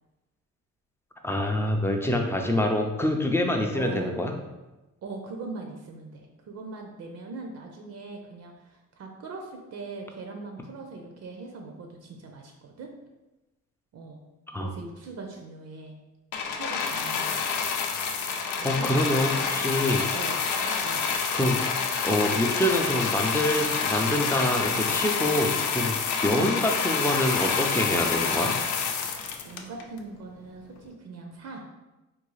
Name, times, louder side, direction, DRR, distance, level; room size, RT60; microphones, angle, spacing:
voice 1, 1.2-4.3 14.5-14.7 18.6-20.1 21.3-21.6 22.0-26.0 26.2-28.5, left 1 dB, 10° left, 3 dB, 0.4 m, -26 dB
voice 2, 3.7-4.2 5.0-12.9 13.9-14.2 14.5-15.9 16.5-17.3 18.6-18.9 19.3-19.5 20.1-20.4 20.8-21.1 26.3-26.6 29.4-31.6, right 3 dB, 60° right, 2 dB, 0.5 m, -40 dB
Grist Mill - Corn Down Hatch, 16.3-30.0 30.8-30.9, left 6 dB, 70° left, 0.5 m, -28 dB
3.6 x 2.3 x 3.1 m, 1.0 s
cardioid pair, 90°, 30 cm